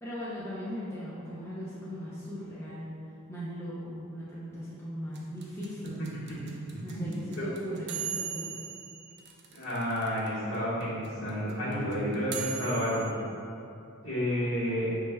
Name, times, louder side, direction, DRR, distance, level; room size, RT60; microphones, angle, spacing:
voice 1, 0.0-2.9 3.3-6.0 6.8-8.6, equal, 10° left, -9 dB, 0.4 m, -38 dB
sound 1, 5.1-10.3 10.5-10.6 10.8-13.1, right 8 dB, 50° right, 0.4 m, -38 dB
voice 2, 6.4-7.0 7.4-7.5 9.5-13.1 14.0-14.9, equal, 70° left, -9 dB, 1.4 m, -31 dB
5.4 x 3.1 x 2.2 m, 2.7 s
head